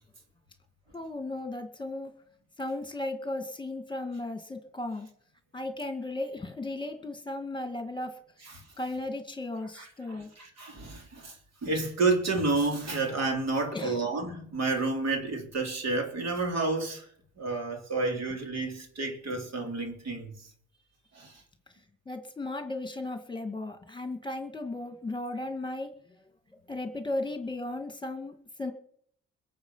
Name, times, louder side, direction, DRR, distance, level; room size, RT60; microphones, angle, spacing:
voice 1, 0.9-2.1 2.6-5.1 5.5-8.2 8.8-10.3 13.7-14.0 22.1-25.9 26.7-28.7, left 2 dB, 15° left, 2.1 m, -35 dB
voice 2, 9.7-11.4 11.6-17.1 17.4-20.5 21.1-21.4, right 3 dB, 60° right, 3.5 m, -30 dB
22.0 x 7.5 x 5.7 m
cardioid pair, 90°, 30 cm